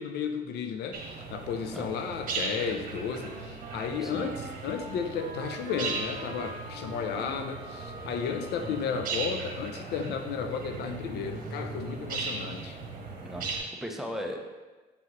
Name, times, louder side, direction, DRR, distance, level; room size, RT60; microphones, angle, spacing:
voice 1, 0.0-12.8, left 6 dB, 75° left, 6 dB, 0.6 m, -33 dB
sound 1, 0.9-13.6, right 4 dB, 55° right, 1.2 m, -38 dB
Wind instrument woodwind instrument, 2.5-9.8, right 4 dB, 70° right, 0.9 m, -46 dB
voice 2, 4.0-4.4 8.6-8.7 13.2-14.4, equal, ahead, 1 dB, 0.7 m, -38 dB
Wind instrument woodwind instrument 2, 4.4-8.9, equal, 35° left, 1.7 m, -49 dB
6.2 x 5.9 x 3.1 m, 1.2 s
cardioid pair, 110°, 17 cm